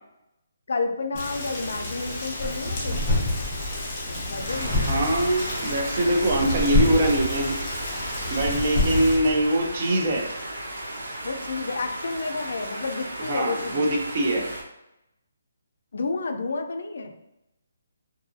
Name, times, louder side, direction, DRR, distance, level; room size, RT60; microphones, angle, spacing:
voice 1, 0.7-3.0 4.1-5.2 11.2-13.8 15.9-17.1, left 3 dB, 65° left, 5 dB, 0.3 m, -30 dB
Rain, 1.2-9.2, left 1 dB, 25° left, 1.0 m, -34 dB
sound 1, 2.1-9.5, left 2 dB, 5° right, 0.9 m, -28 dB
sound 2, 4.5-14.6, right 1 dB, 85° right, 0.7 m, -35 dB
voice 2, 4.7-7.6 8.0-10.2 13.2-14.5, right 1 dB, 35° right, 1 dB, 0.5 m, -23 dB
2.6 x 2.4 x 2.6 m, 0.88 s
hypercardioid pair, 165°, 0 cm